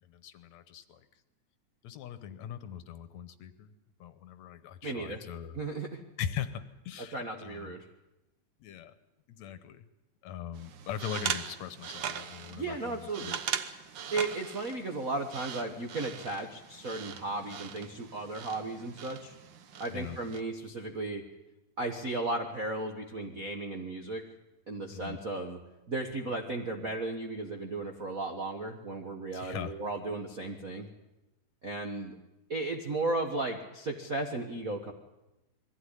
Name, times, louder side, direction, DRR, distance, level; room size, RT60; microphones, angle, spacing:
voice 1, 0.0-1.1 1.8-3.7 4.0-5.6 6.2-7.8 8.6-8.9 9.3-9.9 10.2-13.4 19.9-20.2 24.9-25.2 29.3-29.8, left 9 dB, 70° left, 12 dB, 2.0 m, -41 dB
voice 2, 4.8-5.2 5.5-6.0 7.1-7.9 12.5-13.3 14.1-19.3 19.8-21.2 21.8-24.3 24.7-25.6 25.9-30.9 31.6-32.2 32.5-34.9, right 2 dB, 50° right, 3 dB, 1.0 m, -35 dB
sound 1, 10.5-20.4, right 8 dB, 90° right, 1.0 m, -40 dB
21.5 x 15.5 x 9.8 m, 0.97 s
omnidirectional pair, 3.6 m